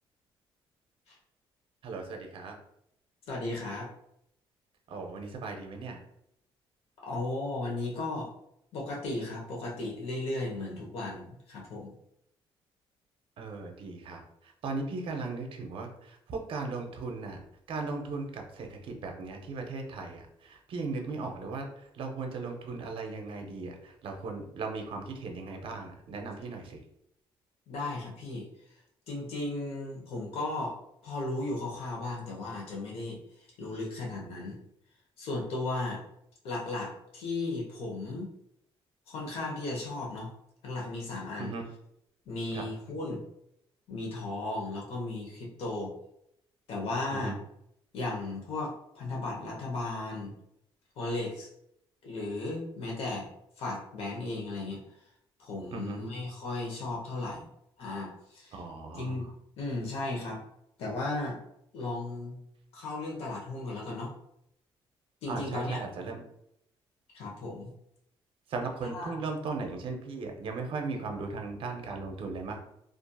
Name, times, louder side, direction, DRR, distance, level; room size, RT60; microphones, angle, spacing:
voice 1, 1.8-2.6 4.9-6.0 13.4-17.4 17.7-26.8 41.4-41.7 42.5-42.6 47.1-47.4 55.7-56.1 58.5-59.3 65.3-66.2 68.5-72.6, right 3 dB, 60° right, 3 dB, 0.6 m, -37 dB
voice 2, 3.3-3.9 7.0-8.3 8.7-11.9 27.7-28.5 29.1-30.8 31.0-33.2 33.6-34.6 35.2-36.0 36.4-38.3 39.1-40.3 40.6-41.5 42.3-43.2 43.9-45.9 46.7-47.3 47.9-50.3 51.0-51.5 52.0-53.3 53.6-54.8 55.4-57.5 57.8-58.5 59.0-59.2 59.6-60.4 60.8-61.4 61.7-62.4 62.7-64.1 65.2-65.8 67.1-67.7 68.9-69.2, left 2 dB, 75° left, -2 dB, 0.8 m, -35 dB
2.7 x 2.4 x 2.2 m, 0.75 s
cardioid pair, 95°, 10 cm